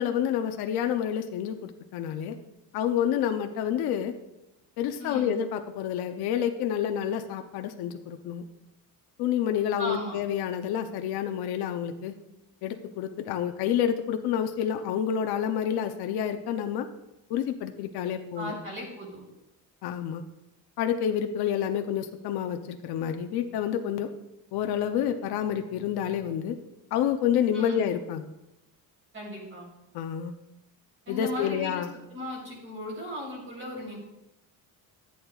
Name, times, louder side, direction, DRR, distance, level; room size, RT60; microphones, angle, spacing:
voice 1, 0.0-2.4 2.7-4.1 4.8-8.4 9.2-12.1 12.6-16.9 17.3-18.6 19.8-20.2 20.8-24.1 24.5-26.6 26.9-28.2 29.9-30.4 31.1-31.9, left 9 dB, 80° left, 6 dB, 0.7 m, -28 dB
voice 2, 5.0-5.3 9.8-10.2 18.3-19.2 27.5-27.9 29.1-29.7 31.1-34.0, left 1 dB, 35° right, -2 dB, 3.9 m, -36 dB
14.5 x 8.7 x 2.4 m, 0.92 s
cardioid pair, 175°, 38 cm